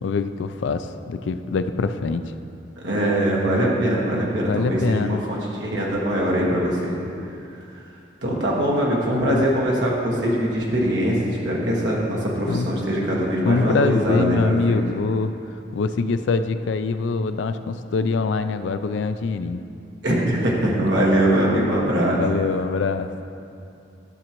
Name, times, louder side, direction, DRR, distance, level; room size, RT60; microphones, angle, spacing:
voice 1, 0.0-2.3 4.4-5.2 9.1-9.4 12.5-12.7 13.4-15.3 15.7-19.7 22.1-23.1, left 4 dB, 80° left, 10 dB, 0.4 m, -24 dB
voice 2, 2.8-7.0 8.2-14.8 20.0-22.2, right 1 dB, 75° right, -4 dB, 1.5 m, -22 dB
12.5 x 6.2 x 3.0 m, 2.7 s
head